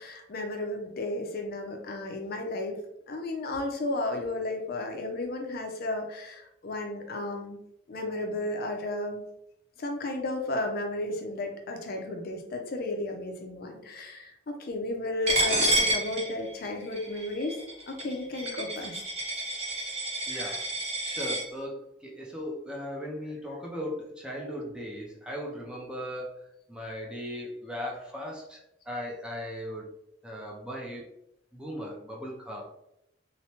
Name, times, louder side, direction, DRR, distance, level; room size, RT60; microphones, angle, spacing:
voice 1, 0.0-2.8 3.1-7.6 7.9-9.2 9.8-17.6 17.9-19.0 20.3-20.6, left 2 dB, 50° left, 3 dB, 0.5 m, -33 dB
Coin (dropping), 15.3-21.4, right 1 dB, 35° right, 0.8 m, -29 dB
voice 2, 20.3-20.7 21.0-29.9 30.2-31.1 31.5-32.7, equal, 5° right, -3 dB, 0.4 m, -38 dB
3.1 x 2.0 x 2.8 m, 0.80 s
head